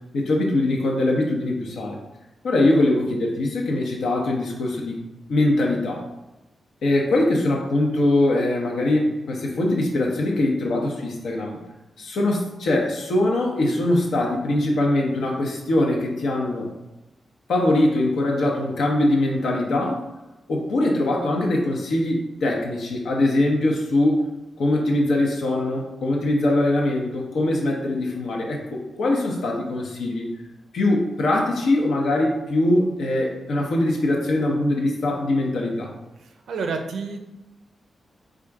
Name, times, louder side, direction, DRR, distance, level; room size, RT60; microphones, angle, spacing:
voice 1, 0.1-2.0 2.4-5.0 5.3-6.0 6.8-11.6 12.0-16.7 17.5-20.0 20.5-24.2 24.6-30.3 30.7-35.9, left 1 dB, 85° left, -1 dB, 0.9 m, -22 dB
voice 2, 36.5-37.2, right 4 dB, 85° right, 4 dB, 0.5 m, -28 dB
3.7 x 2.5 x 4.6 m, 0.98 s
wide cardioid pair, 115°, 0 cm